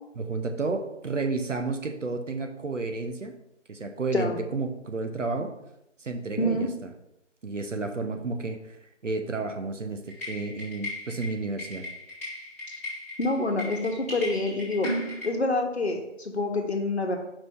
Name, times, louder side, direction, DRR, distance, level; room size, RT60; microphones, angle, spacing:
voice 1, 0.2-3.3 3.7-5.5 6.0-6.9 7.4-8.8 9.0-11.9, right 3 dB, 75° right, 5 dB, 1.0 m, -31 dB
voice 2, 6.4-6.7 13.2-14.9 15.2-17.2, left 2 dB, 60° left, 3 dB, 1.1 m, -27 dB
sound 1, 10.1-15.3, left 1 dB, 10° left, 1.6 m, -36 dB
5.4 x 5.1 x 3.6 m, 0.84 s
figure-of-eight pair, 175°, 38 cm